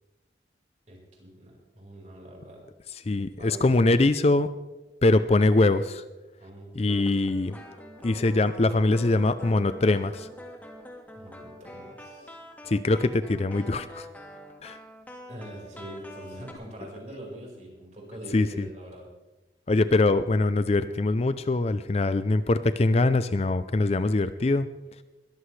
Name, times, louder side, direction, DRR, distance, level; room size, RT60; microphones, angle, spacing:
voice 1, 0.9-2.6 3.4-3.8 6.4-7.1 11.1-12.4 12.9-13.1 15.3-19.1, equal, 40° right, -2 dB, 4.8 m, -43 dB
voice 2, 3.1-4.5 5.0-6.0 6.8-7.6 8.0-10.3 12.7-14.1 14.6-14.8 18.3-18.7 19.7-24.7, left 2 dB, 35° left, 12 dB, 0.4 m, -23 dB
sound 1, 6.9-16.5, equal, 10° left, 1.7 m, -45 dB
21.0 x 14.0 x 3.3 m, 1.1 s
head